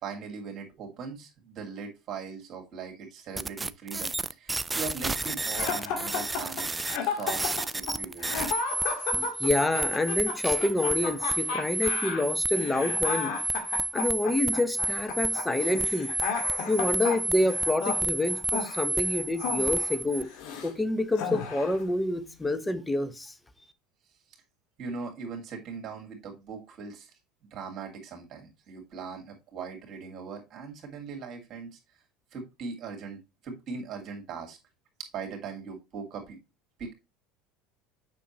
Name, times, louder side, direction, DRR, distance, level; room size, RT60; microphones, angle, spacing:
voice 1, 0.0-6.7 7.0-8.4 24.8-27.1 27.5-31.8 32.3-34.6 35.1-36.4 36.8-36.9, right 5 dB, 50° right, 2.3 m, -40 dB
sound 1, 3.4-20.2, right 2 dB, 15° right, 0.4 m, -31 dB
sound 2, 5.5-20.7 21.1-21.8, left 5 dB, 70° left, 2.0 m, -34 dB
voice 2, 9.1-13.4 13.9-16.1 16.7-20.3 20.6-23.3, left 2 dB, 10° left, 0.9 m, -28 dB
6.9 x 5.9 x 3.0 m
hypercardioid pair, 90°, 0 cm